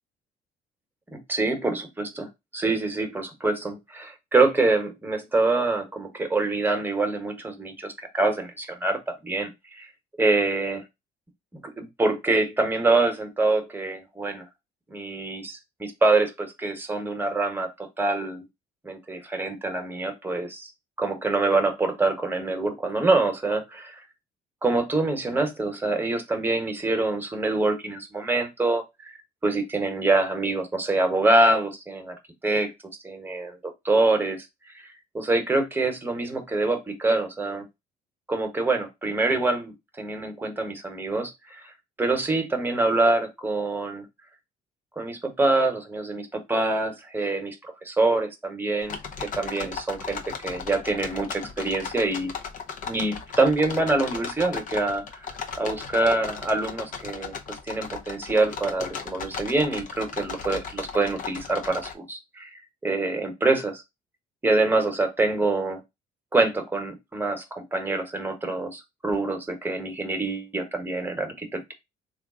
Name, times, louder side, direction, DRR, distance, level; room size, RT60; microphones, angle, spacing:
voice 1, 1.1-9.9 10.2-10.8 11.6-14.4 14.9-17.7 18.0-18.4 18.8-20.7 21.0-24.0 24.6-29.1 29.4-32.2 32.4-32.7 33.0-34.5 34.7-34.8 35.1-37.7 38.3-41.7 42.0-44.0 45.0-49.0 49.3-52.3 52.8-55.3 55.6-63.8 64.4-65.8 66.3-71.7, right 2 dB, 10° right, 5 dB, 1.0 m, -25 dB
sound 1, 48.8-61.9, left 6 dB, 50° left, 0.7 m, -36 dB
3.4 x 2.4 x 3.6 m, 0.21 s
cardioid pair, 110°, 17 cm